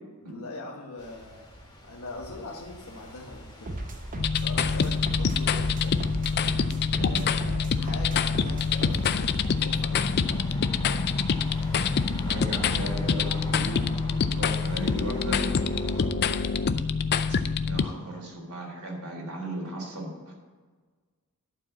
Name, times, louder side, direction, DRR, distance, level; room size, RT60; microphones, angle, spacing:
voice 1, 0.2-1.6 1.8-3.8 4.4-6.0 6.9-10.6 15.7-16.2, left 2 dB, 70° left, -2 dB, 1.3 m, -42 dB
sound 1, 1.0-16.1, left 1 dB, 20° left, 2.2 m, -45 dB
sound 2, 3.7-9.3, right 1 dB, 35° right, 0.9 m, -36 dB
sound 3, 4.2-17.8, left 5 dB, 45° left, 0.5 m, -26 dB
voice 2, 6.9-7.3 12.3-15.4 17.6-20.1, right 1 dB, 75° right, -2 dB, 3.8 m, -36 dB
11.5 x 4.8 x 7.6 m, 1.4 s
head